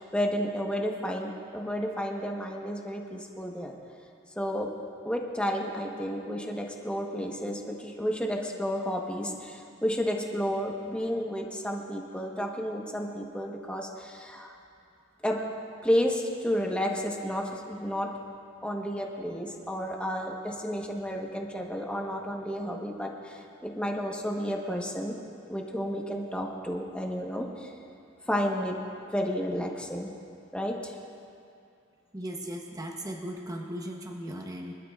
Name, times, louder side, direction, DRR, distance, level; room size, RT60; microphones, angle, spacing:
voice 1, 0.0-3.7 4.4-4.7 5.0-14.5 15.2-15.4 15.8-18.1 18.6-25.1 25.5-27.7 28.3-28.8 29.1-30.1 30.5-31.0, equal, 5° left, 0 dB, 1.1 m, -31 dB
voice 2, 32.1-34.7, equal, 20° right, 0 dB, 0.9 m, -37 dB
25.0 x 12.0 x 2.4 m, 2.5 s
head